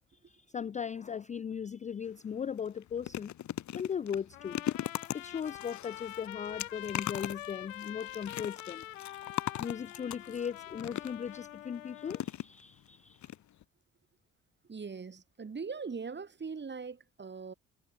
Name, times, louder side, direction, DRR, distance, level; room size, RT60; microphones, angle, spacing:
voice 1, 0.3-3.3 3.7-4.6 5.1-8.8 9.6-13.2, left 7 dB, 20° left, 0.4 m, -38 dB
sound 1, 2.0-2.2 2.6-11.4 12.1-12.9 13.2-13.4 13.6-13.7, left 12 dB, 50° left, 1.3 m, -39 dB
Trumpet, 4.3-12.2, left 14 dB, 80° left, 0.8 m, -45 dB
voice 2, 14.7-17.5, right 5 dB, 30° right, 2.5 m, -41 dB
figure-of-eight pair, 45°, 38 cm